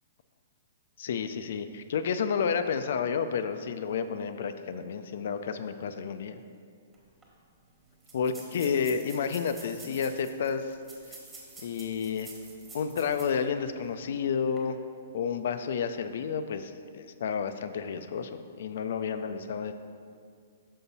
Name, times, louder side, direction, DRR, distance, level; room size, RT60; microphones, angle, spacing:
voice 1, 1.0-6.4 8.1-10.6 11.6-12.3 12.7-14.8 15.1-19.7, left 6 dB, 65° left, 10 dB, 0.4 m, -31 dB
sound 1, 6.9-7.0 7.2-7.3 8.0-13.4 13.8-13.9 14.4-14.6, right 3 dB, 10° right, 1.3 m, -48 dB
5.7 x 5.5 x 4.1 m, 2.2 s
hypercardioid pair, 150°, 0 cm